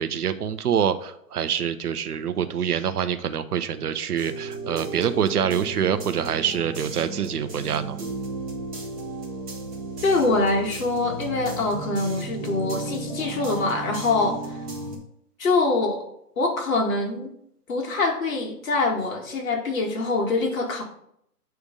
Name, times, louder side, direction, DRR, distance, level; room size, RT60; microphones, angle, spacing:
voice 1, 0.0-8.0, right 8 dB, 70° right, 11 dB, 0.8 m, -25 dB
sound 1, 4.2-15.0, right 3 dB, 20° right, 1.5 m, -34 dB
voice 2, 10.0-14.6 15.4-16.1 16.4-17.3 17.7-20.8, left 3 dB, 55° left, 0 dB, 2.1 m, -24 dB
8.4 x 3.5 x 5.2 m, 0.72 s
hypercardioid pair, 165°, 48 cm